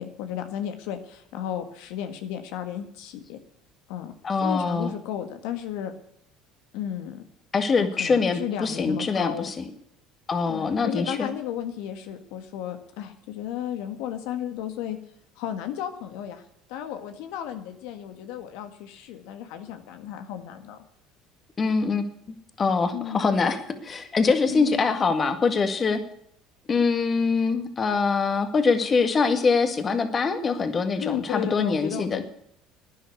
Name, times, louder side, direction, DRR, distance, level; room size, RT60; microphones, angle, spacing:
voice 1, 0.0-3.4 3.9-4.1 4.4-5.9 6.7-7.2 7.8-9.5 10.5-15.0 15.4-16.4 16.7-20.8 22.9-23.2 24.4-24.9 31.0-32.2, left 10 dB, 80° left, 7 dB, 1.7 m, -34 dB
voice 2, 4.2-4.9 7.5-9.6 10.3-11.3 21.6-22.0 22.6-26.0 26.7-32.2, left 4 dB, 30° left, 7 dB, 1.9 m, -24 dB
11.5 x 10.0 x 8.3 m, 0.69 s
supercardioid pair, 105°, 0 cm